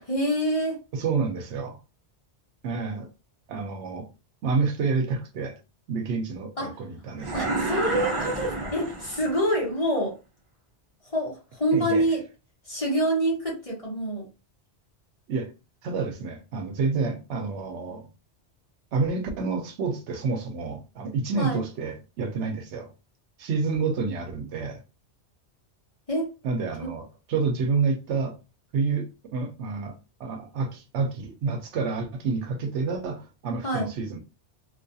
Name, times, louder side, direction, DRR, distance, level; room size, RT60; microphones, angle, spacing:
voice 1, 0.0-0.8 6.6-6.7 7.3-10.1 11.0-12.2 12.7-14.3 21.4-21.6 26.1-26.3 33.6-33.9, right 1 dB, 30° left, 0.9 m, -26 dB
voice 2, 0.9-1.8 2.6-3.1 3.5-4.1 4.4-5.6 5.9-7.6 11.7-12.0 15.3-15.5 15.8-18.1 18.9-22.9 23.4-24.8 26.4-28.4 28.7-34.2, right 4 dB, 75° right, 0.9 m, -29 dB
sound 1, 7.2-9.5, right 2 dB, 40° right, 0.4 m, -30 dB
2.4 x 2.3 x 2.6 m
omnidirectional pair, 1.2 m